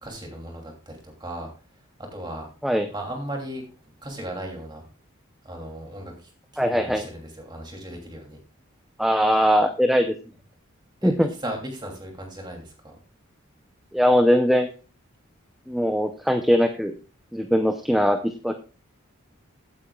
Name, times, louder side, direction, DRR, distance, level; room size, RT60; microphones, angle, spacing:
voice 1, 0.0-1.5 2.1-2.5 2.9-3.6 4.0-4.8 5.4-6.3 6.7-8.4 11.0-13.0, right 1 dB, 20° right, 1 dB, 2.8 m, -36 dB
voice 2, 6.6-7.0 9.0-10.1 11.0-11.3 13.9-14.7 15.7-16.9 17.3-18.5, equal, ahead, 5 dB, 0.6 m, -21 dB
16.0 x 8.6 x 2.3 m, 0.35 s
head